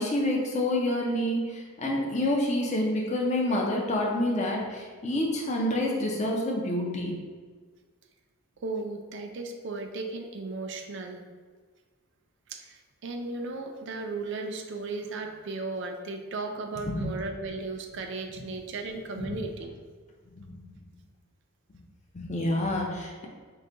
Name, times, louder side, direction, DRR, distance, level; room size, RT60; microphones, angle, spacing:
voice 1, 0.0-7.2 16.9-17.1 19.2-19.4 20.4-20.6 22.1-23.3, left 1 dB, 30° left, 0 dB, 0.5 m, -28 dB
voice 2, 8.6-11.2 12.5-19.7, right 3 dB, 55° right, 4 dB, 0.4 m, -36 dB
4.7 x 2.2 x 3.7 m, 1.5 s
head